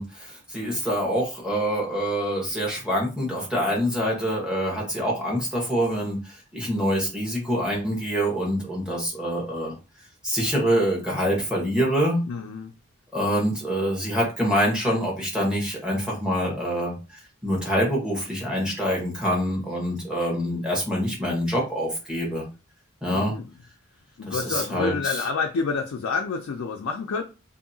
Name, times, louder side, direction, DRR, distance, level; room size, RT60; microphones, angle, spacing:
voice 1, 0.0-9.7 10.2-12.2 13.1-22.5 23.0-23.3 24.3-25.2, equal, 5° right, -4 dB, 1.0 m, -25 dB
voice 2, 12.3-12.7 23.1-23.5 24.2-27.2, left 5 dB, 75° left, 3 dB, 0.4 m, -28 dB
2.7 x 2.6 x 2.6 m, 0.31 s
head